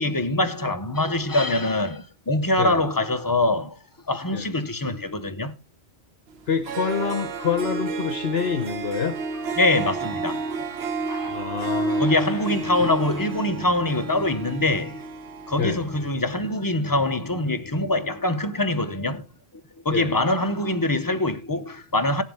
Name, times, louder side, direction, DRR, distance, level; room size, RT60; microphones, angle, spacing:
voice 1, 0.0-3.8 4.1-5.5 9.6-11.4 12.0-15.0 15.5-19.3 19.8-22.2, left 2 dB, 25° left, 0.6 m, -24 dB
Harp, 6.4-6.5 6.6-16.2, right 3 dB, 70° right, 1.1 m, -30 dB
voice 2, 6.5-9.2 11.3-12.1 12.8-12.9 15.6-15.8 19.9-20.2, left 6 dB, 65° left, 1.1 m, -27 dB
17.0 x 7.3 x 3.5 m
omnidirectional pair, 1.1 m